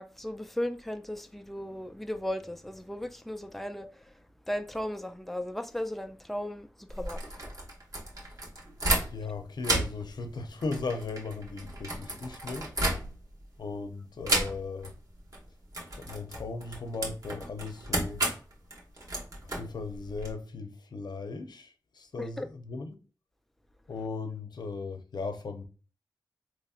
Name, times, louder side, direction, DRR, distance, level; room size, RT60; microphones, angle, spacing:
voice 1, 0.0-4.0 4.5-7.2 14.2-14.4 22.4-22.5, left 1 dB, 5° left, 0.4 m, -36 dB
sound 1, 6.9-9.3 9.6-13.4 14.2-14.9 15.2-15.4 15.7-20.3, right 1 dB, 50° right, 1.4 m, -33 dB
voice 2, 9.1-12.7 13.6-14.9 15.9-18.3 19.5-23.0 23.9-25.6, left 4 dB, 70° left, 0.6 m, -37 dB
4.2 x 3.0 x 2.4 m
wide cardioid pair, 75°, 7 cm